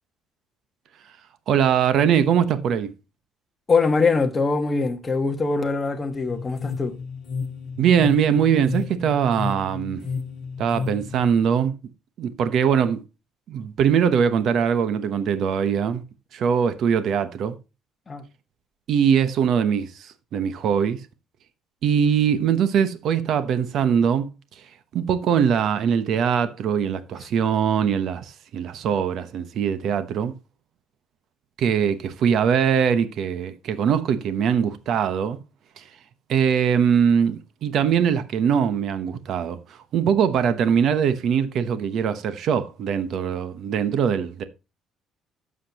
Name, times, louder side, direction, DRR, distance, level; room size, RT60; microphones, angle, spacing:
voice 1, 1.5-2.9 7.8-10.1 10.6-11.7 12.2-13.0 13.5-16.0 16.3-17.6 18.9-21.0 21.8-24.3 24.9-30.3 31.6-35.4 35.8-35.9 36.3-44.4, right 7 dB, 55° right, 0.9 m, -22 dB
voice 2, 3.7-7.0 18.1-18.2, left 4 dB, 20° left, 1.3 m, -22 dB
sound 1, 6.1-11.3, left 5 dB, 55° left, 1.6 m, -32 dB
11.5 x 7.4 x 2.9 m
cardioid pair, 145°, 0 cm